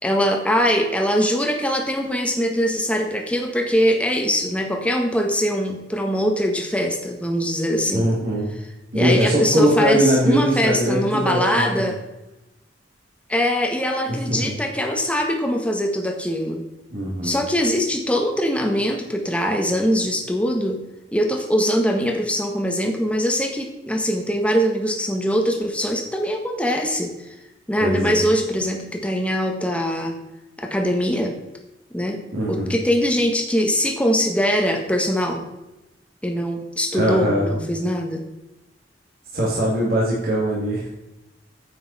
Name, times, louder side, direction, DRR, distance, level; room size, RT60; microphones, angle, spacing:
voice 1, 0.0-8.1 8.9-12.0 13.3-16.6 17.2-20.8 21.1-27.1 27.7-30.1 30.6-31.3 31.9-32.2 32.5-35.4 36.2-38.2, equal, 5° left, 2 dB, 1.5 m, -22 dB
voice 2, 7.9-8.5 8.9-11.9 14.1-14.5 16.9-17.4 27.8-28.2 32.3-32.7 36.9-37.4 39.3-40.9, right 1 dB, 55° right, -5 dB, 2.5 m, -21 dB
9.5 x 8.5 x 4.2 m, 0.98 s
head